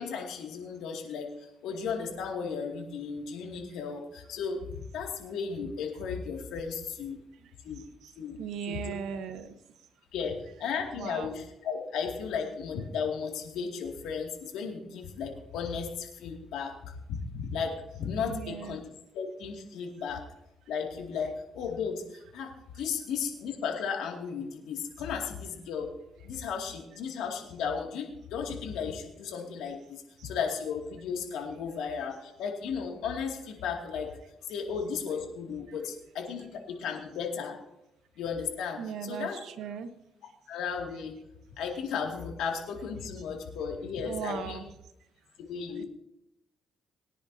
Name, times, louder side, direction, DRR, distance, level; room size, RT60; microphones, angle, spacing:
voice 1, 0.0-7.2 7.6-7.8 8.2-8.4 8.7-8.9 10.1-18.8 19.1-20.3 20.7-25.9 26.2-37.6 38.2-39.4 40.5-41.2 41.6-44.6 45.5-45.8, left 6 dB, 85° left, 2 dB, 2.3 m, -35 dB
voice 2, 7.4-8.1 8.4-9.5 10.9-11.3 18.2-18.8 30.2-30.3 38.8-39.9 44.0-44.7 45.8-45.9, right 7 dB, 80° right, 9 dB, 1.1 m, -38 dB
21.5 x 10.5 x 2.8 m, 0.86 s
cardioid pair, 90°, 0 cm